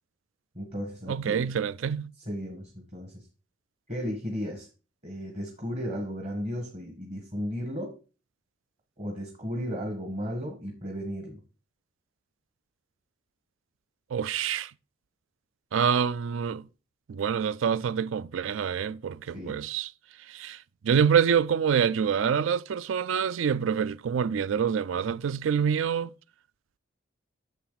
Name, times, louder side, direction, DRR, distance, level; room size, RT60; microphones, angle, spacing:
voice 1, 0.6-1.5 2.2-3.3 3.9-4.7 5.0-8.0 9.0-11.4 19.3-19.6, equal, 35° right, 1.7 m, -35 dB
voice 2, 1.1-2.1 14.1-14.7 15.7-16.6 17.1-19.9 20.3-20.6 20.8-26.1, right 7 dB, 75° right, 0.4 m, -26 dB
10.0 x 6.8 x 4.0 m
head